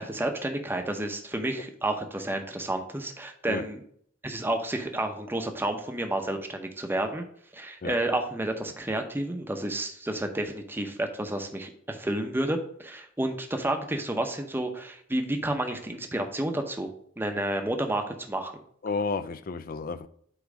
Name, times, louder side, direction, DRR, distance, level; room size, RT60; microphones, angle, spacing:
voice 1, 0.0-3.8 4.2-7.2 7.5-16.9 17.2-18.5, right 1 dB, 10° right, 0.7 m, -30 dB
voice 2, 18.8-20.1, left 4 dB, 45° left, 0.4 m, -31 dB
8.1 x 3.1 x 4.9 m
head